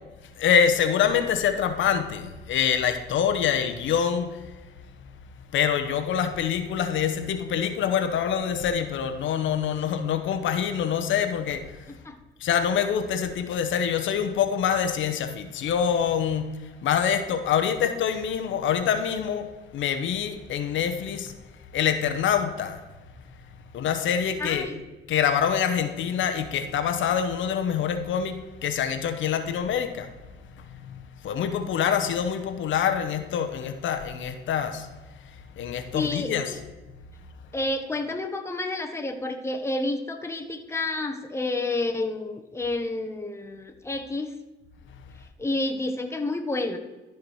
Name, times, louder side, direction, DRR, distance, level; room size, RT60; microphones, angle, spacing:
voice 1, 0.4-4.4 5.5-11.9 12.4-19.5 19.7-21.3 21.7-22.8 23.7-24.7 25.1-30.1 30.6-34.9 35.6-36.5, left 8 dB, 75° left, 8 dB, 0.9 m, -25 dB
voice 2, 24.4-24.8 35.9-36.6 37.5-44.3 45.4-46.8, left 2 dB, 15° left, 4 dB, 1.1 m, -29 dB
13.0 x 4.8 x 4.7 m, 1.2 s
cardioid pair, 90°, 20 cm